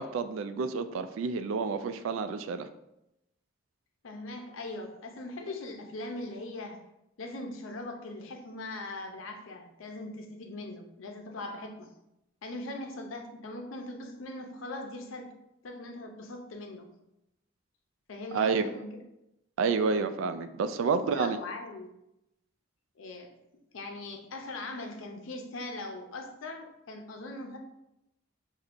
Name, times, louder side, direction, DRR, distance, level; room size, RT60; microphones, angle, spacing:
voice 1, 0.0-2.7 18.3-18.7 19.6-21.4, right 5 dB, 80° right, 11 dB, 0.3 m, -29 dB
voice 2, 4.0-6.8 7.2-11.9 12.4-15.3 15.6-16.9 18.1-19.0 20.8-21.9 23.0-23.3 23.7-27.6, left 2 dB, 85° left, 3 dB, 0.6 m, -40 dB
5.8 x 2.7 x 2.5 m, 0.86 s
head